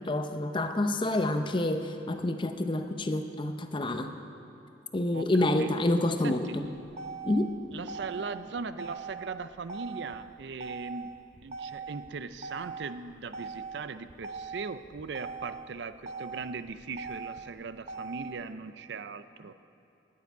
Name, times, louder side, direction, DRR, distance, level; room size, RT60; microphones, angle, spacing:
voice 1, 0.0-4.1 4.9-6.6 7.2-7.6, left 1 dB, 25° left, 7 dB, 0.6 m, -28 dB
voice 2, 6.2-6.6 7.7-11.2 11.4-19.5, right 4 dB, 65° right, 12 dB, 0.5 m, -39 dB
Motor vehicle (road), 6.5-18.5, right 5 dB, 40° right, 0.8 m, -42 dB
9.8 x 9.5 x 9.3 m, 2.8 s
head